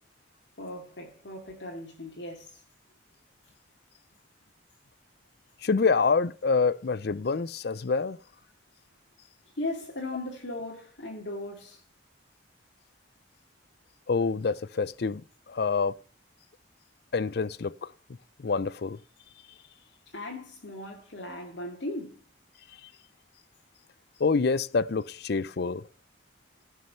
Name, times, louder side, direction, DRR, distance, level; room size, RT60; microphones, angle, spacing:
voice 1, 0.6-2.6 9.6-11.8 20.1-22.2, left 2 dB, 70° left, 2.3 m, -37 dB
voice 2, 5.6-8.2 14.1-15.2 15.5-16.0 17.1-17.9 18.4-19.0 24.2-25.8, left 4 dB, 55° left, 0.5 m, -26 dB
15.5 x 6.4 x 5.5 m
head